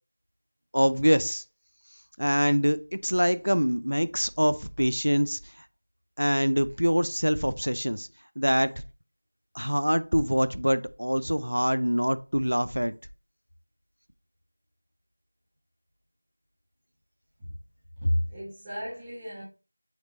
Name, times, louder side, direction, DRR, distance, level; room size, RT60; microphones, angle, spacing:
voice 1, 0.7-1.4 2.2-5.4 6.2-8.1 8.4-8.7 9.5-12.9, equal, 80° right, 0.6 m, -24 dB
voice 2, 18.0-19.4, equal, 5° right, 1.2 m, -30 dB
7.9 x 3.4 x 4.1 m
figure-of-eight pair, 175°, 0 cm